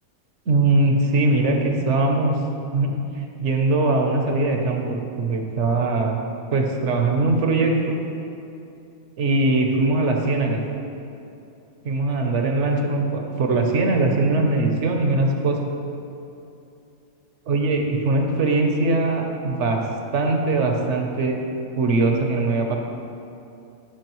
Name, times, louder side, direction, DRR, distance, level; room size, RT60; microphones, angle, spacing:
voice 1, 0.5-2.3 2.7-6.2 6.5-8.0 9.2-10.6 11.8-15.6 17.5-19.8 20.1-21.4 21.8-22.8, right 2 dB, 60° right, 2 dB, 1.1 m, -21 dB
13.5 x 5.8 x 3.0 m, 2.7 s
omnidirectional pair, 1.5 m